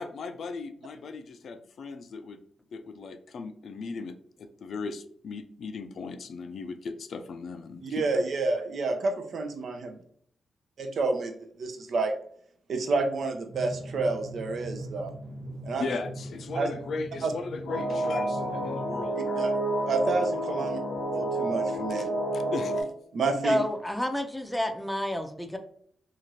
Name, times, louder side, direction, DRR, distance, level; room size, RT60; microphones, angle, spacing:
voice 1, 0.0-2.4 2.7-8.0 15.8-19.4 21.1-21.2 21.9-22.9, left 4 dB, 70° left, 10 dB, 0.3 m, -37 dB
voice 2, 7.8-9.9 10.8-11.3 11.6-12.1 12.7-15.1 15.6-15.9 16.5-16.7 17.2-17.3 19.4-19.5 19.9-20.8 21.1-22.1 23.1-23.6, right 3 dB, 70° right, 6 dB, 0.5 m, -29 dB
Drum, 13.5-19.1, right 1 dB, 90° right, 1.3 m, -41 dB
sound 1, 17.7-22.8, right 1 dB, 90° left, 0.7 m, -29 dB
voice 3, 23.4-25.6, left 1 dB, 5° left, 5 dB, 0.5 m, -29 dB
2.7 x 2.4 x 3.0 m, 0.63 s
cardioid pair, 55°, 0 cm